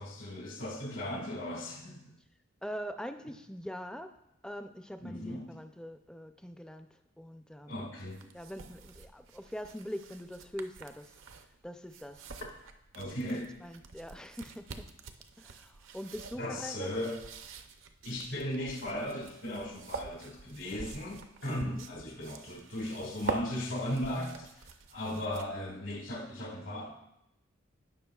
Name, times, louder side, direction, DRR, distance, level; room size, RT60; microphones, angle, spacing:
voice 1, 0.0-2.1 5.0-5.5 7.7-8.2 12.9-13.5 16.3-17.2 18.0-26.9, left 1 dB, 70° left, -1 dB, 2.0 m, -37 dB
voice 2, 2.6-4.1 4.4-6.9 7.2-7.8 8.3-11.2 11.6-12.3 13.3-14.9 15.4-16.9 21.7-21.9, equal, 5° left, 7 dB, 0.4 m, -43 dB
sound 1, 8.0-25.7, right 4 dB, 70° right, 0.6 m, -46 dB
17.5 x 5.9 x 2.3 m, 0.84 s
head